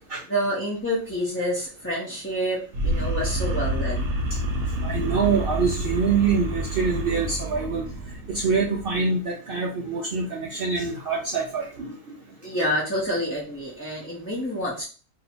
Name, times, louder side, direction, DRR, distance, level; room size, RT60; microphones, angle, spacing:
voice 1, 0.3-4.1 12.4-14.8, equal, 15° left, -6 dB, 0.7 m, -28 dB
sound 1, 2.7-9.0, right 1 dB, 70° right, 1.1 m, -28 dB
voice 2, 4.8-7.8 8.3-11.9, right 5 dB, 55° right, -2 dB, 0.7 m, -25 dB
2.8 x 2.7 x 4.2 m, 0.38 s
omnidirectional pair, 1.4 m